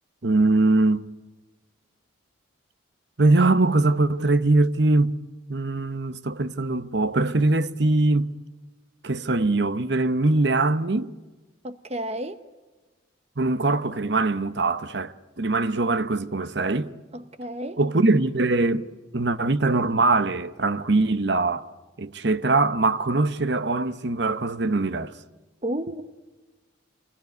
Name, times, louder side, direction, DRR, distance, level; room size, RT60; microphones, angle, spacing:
voice 1, 0.2-1.0 3.2-5.2 5.5-8.4 9.0-11.1 13.4-16.9 17.8-21.7 22.0-25.1, right 2 dB, 55° right, 1.0 m, -22 dB
voice 2, 11.6-12.4 17.1-17.8 25.6-26.0, right 1 dB, 30° right, 0.9 m, -31 dB
27.5 x 21.0 x 9.4 m
head